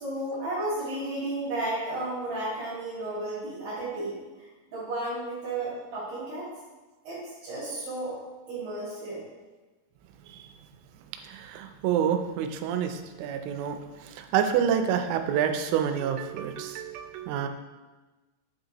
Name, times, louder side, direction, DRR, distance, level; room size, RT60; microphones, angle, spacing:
voice 1, 0.0-4.2 4.7-6.5 7.0-8.2 8.5-9.2, right 2 dB, 55° right, -10 dB, 3.4 m, -33 dB
voice 2, 11.2-17.5, right 8 dB, 85° right, 7 dB, 3.0 m, -28 dB
8.7 x 5.3 x 2.9 m, 1.2 s
omnidirectional pair, 5.6 m